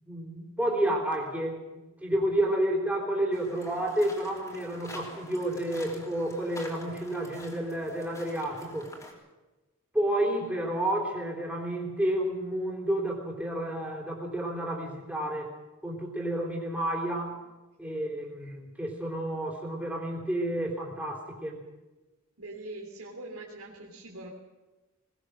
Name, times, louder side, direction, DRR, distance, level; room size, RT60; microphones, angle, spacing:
voice 1, 0.1-1.6 2.0-8.9 9.9-15.5 15.8-17.4 17.8-21.6, right 1 dB, 5° right, -1 dB, 3.8 m, -30 dB
sound 1, 3.3-9.1, left 1 dB, 15° left, 3.3 m, -47 dB
voice 2, 22.4-24.3, right 2 dB, 85° right, -3 dB, 3.4 m, -42 dB
20.5 x 19.5 x 6.7 m, 1.1 s
head